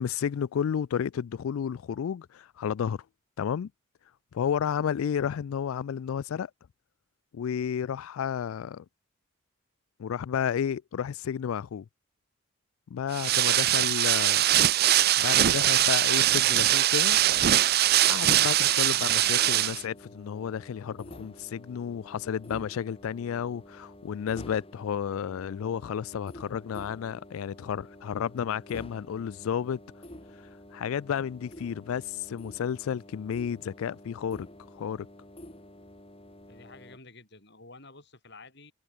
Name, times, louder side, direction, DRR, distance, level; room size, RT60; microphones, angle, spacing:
voice 1, 0.0-3.0 3.4-3.7 4.3-6.5 7.3-8.8 10.0-11.8 12.9-14.4 14.9-17.2 18.1-29.8 30.7-34.5 34.7-35.1, left 8 dB, 90° left, 0.3 m, -32 dB
sound 1, 13.1-19.8, right 13 dB, 50° right, 0.5 m, -22 dB
sound 2, 18.8-37.0, left 1 dB, 30° left, 7.0 m, -49 dB
voice 2, 36.5-38.7, left 3 dB, 55° left, 7.3 m, -50 dB
head